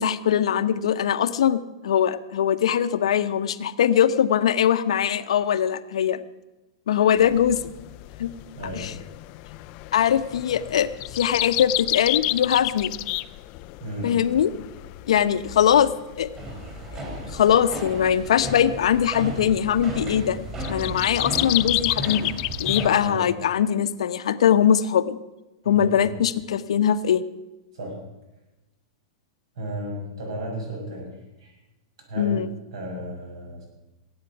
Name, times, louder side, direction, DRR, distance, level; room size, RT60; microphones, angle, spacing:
voice 1, 0.0-6.2 6.9-7.6 8.2-8.3 8.7-8.9 9.9-12.9 14.0-14.5 15.1-15.9 16.2-16.3 17.3-20.4 20.7-25.2 25.7-27.2 32.2-32.5, left 9 dB, 85° left, 11 dB, 0.9 m, -21 dB
sound 1, 7.2-23.1, left 20 dB, 35° left, 0.4 m, -31 dB
voice 2, 8.5-9.0 13.8-14.2 23.0-23.3 25.6-26.2 27.7-28.0 29.5-31.6 32.1-33.7, equal, 75° right, 1 dB, 6.8 m, -34 dB
sound 2, 16.4-22.9, right 1 dB, 20° right, 4.0 m, -34 dB
17.0 x 9.0 x 8.0 m, 1.0 s
supercardioid pair, 160°, 3 cm